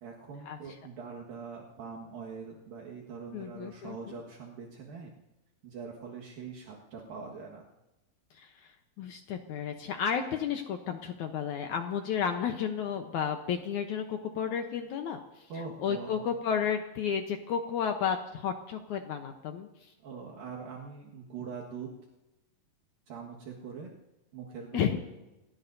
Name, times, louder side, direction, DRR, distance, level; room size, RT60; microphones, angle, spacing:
voice 1, 0.0-5.1 5.6-7.7 15.5-16.3 20.0-21.9 23.1-23.9 24.3-25.0, right 5 dB, 65° right, -3 dB, 3.3 m, -43 dB
voice 2, 3.3-4.2 8.4-8.7 9.0-15.5 15.8-19.7 24.7-25.0, left 7 dB, 70° left, 5 dB, 1.8 m, -32 dB
27.5 x 18.0 x 2.7 m, 1.0 s
omnidirectional pair, 4.5 m